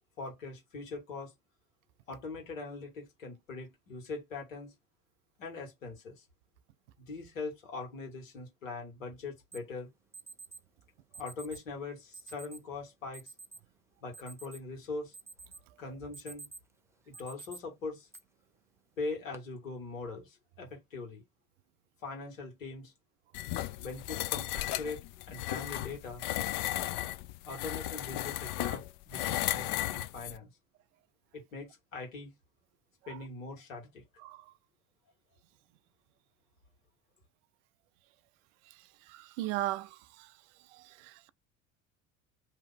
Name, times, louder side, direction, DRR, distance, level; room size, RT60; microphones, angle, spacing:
voice 1, 0.2-1.3 2.1-4.7 5.4-6.2 7.0-9.9 11.2-13.3 14.0-15.1 15.8-16.5 17.1-18.1 19.0-21.2 22.0-22.9 23.8-26.2 27.4-30.5 31.3-32.3 33.1-34.0, left 3 dB, 85° left, 1.6 m, -41 dB
Alarm, 9.5-9.6 10.1-10.6 11.1-11.6 12.1-12.6 13.1-13.6 14.0-14.8 15.1-15.6 16.0-16.7 17.1-17.6 18.1-18.2 19.0-19.4, right 3 dB, 5° right, 0.7 m, -48 dB
sound 1, 23.3-30.4, left 15 dB, 55° left, 0.5 m, -35 dB
voice 2, 39.1-40.3 40.7-41.3, right 16 dB, 65° right, 0.5 m, -37 dB
2.9 x 2.4 x 3.7 m
hypercardioid pair, 65°, 38 cm